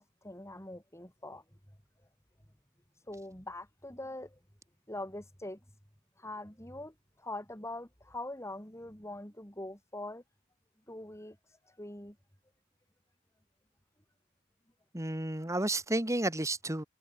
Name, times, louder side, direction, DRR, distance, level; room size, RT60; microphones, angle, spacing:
voice 1, 0.0-1.4 2.9-4.4 4.9-5.6 6.2-10.2 10.9-12.2, left 1 dB, 10° left, 6.4 m, -43 dB
voice 2, 14.9-16.8, right 1 dB, 15° right, 1.8 m, -31 dB
head